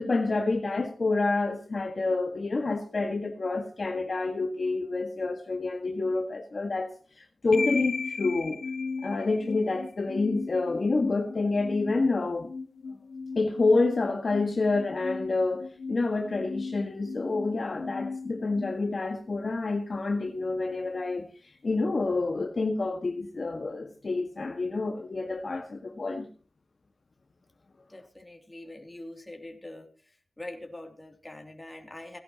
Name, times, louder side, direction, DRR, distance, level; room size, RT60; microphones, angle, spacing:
voice 1, 0.0-6.9 7.2-8.6 9.0-12.5 13.3-21.3 21.6-26.3, left 3 dB, 55° left, 1.6 m, -28 dB
sound 1, 7.5-19.6, left 4 dB, 75° left, 0.9 m, -37 dB
voice 2, 27.9-29.9 30.4-32.2, left 1 dB, 20° left, 2.8 m, -43 dB
17.0 x 11.0 x 2.9 m
wide cardioid pair, 70°, 0 cm